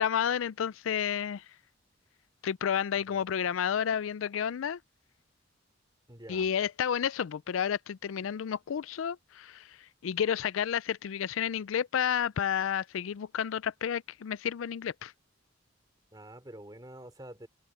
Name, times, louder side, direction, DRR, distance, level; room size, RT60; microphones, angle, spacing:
voice 1, 0.0-1.4 2.4-4.8 6.3-15.1, left 8 dB, 85° left, 0.4 m, -31 dB
voice 2, 3.0-3.3 6.1-6.5 16.1-17.5, right 1 dB, 20° right, 3.2 m, -47 dB
head